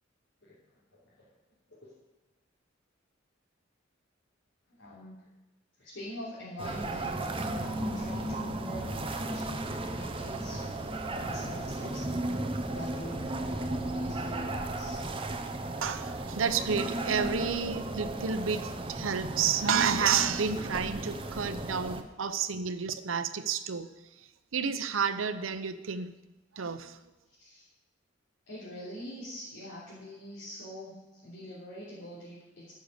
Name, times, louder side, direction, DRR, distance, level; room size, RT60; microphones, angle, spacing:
voice 1, 4.8-5.2 5.8-15.0 27.4-27.7 28.5-32.7, equal, 70° left, -10 dB, 3.3 m, -44 dB
sound 1, 6.6-22.0, right 2 dB, 25° right, 0.8 m, -35 dB
voice 2, 15.8-26.1 26.5-27.0, right 6 dB, 85° right, 11 dB, 0.7 m, -30 dB
14.0 x 6.6 x 6.8 m, 1.1 s
head